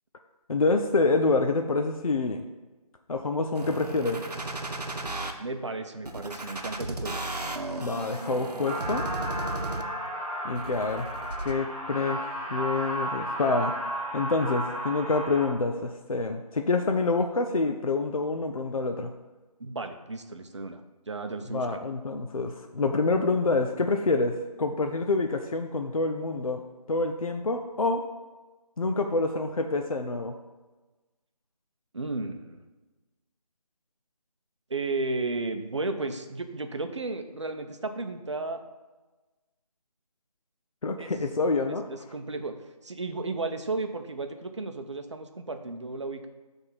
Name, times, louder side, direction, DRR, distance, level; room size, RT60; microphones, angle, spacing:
voice 1, 0.5-2.5 3.1-4.2 7.8-9.1 10.4-11.1 11.4-13.7 14.1-19.1 21.5-26.6 26.9-28.0 28.8-30.4 40.8-41.9, left 3 dB, 60° left, 5 dB, 0.5 m, -27 dB
sound 1, 3.6-5.3 6.1-10.1 10.6-11.5, right 2 dB, 80° right, 0.9 m, -35 dB
voice 2, 5.4-7.3 19.6-20.8 21.1-21.8 31.9-32.6 34.7-38.6 41.0-41.1 41.7-42.6 42.8-46.3, right 3 dB, 50° right, 7 dB, 0.7 m, -34 dB
sound 2, 8.7-15.5, right 1 dB, 10° right, 1.0 m, -34 dB
6.5 x 3.5 x 5.4 m, 1.2 s
figure-of-eight pair, 165°, 20 cm